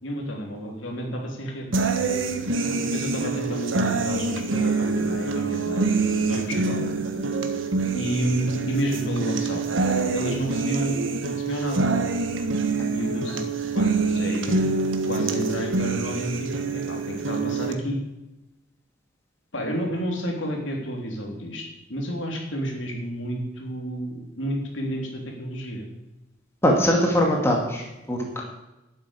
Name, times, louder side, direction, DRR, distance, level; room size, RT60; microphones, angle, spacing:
voice 1, 0.0-1.7 2.8-5.9 6.3-6.9 7.9-9.6 10.1-11.9 12.9-13.4 13.7-14.6 15.1-18.0 19.5-25.8, equal, 70° left, 1 dB, 3.3 m, -30 dB
sound 1, 1.7-17.7, right 3 dB, 75° right, 1.5 m, -25 dB
voice 2, 26.6-28.4, equal, 15° left, 0 dB, 2.3 m, -22 dB
12.0 x 8.0 x 8.5 m, 0.97 s
head